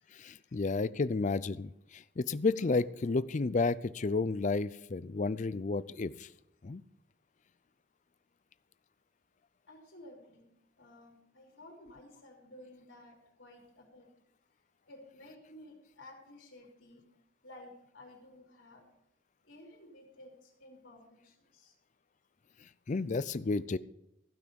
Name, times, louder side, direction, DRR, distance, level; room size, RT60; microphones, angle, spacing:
voice 1, 0.1-6.3 6.6-6.8 22.9-23.8, left 3 dB, 40° left, 17 dB, 0.4 m, -32 dB
voice 2, 9.7-10.5 10.8-14.1 14.9-17.0 17.4-18.8 19.4-21.7, left 1 dB, 65° left, -2 dB, 3.5 m, -54 dB
15.5 x 6.1 x 7.0 m, 0.84 s
head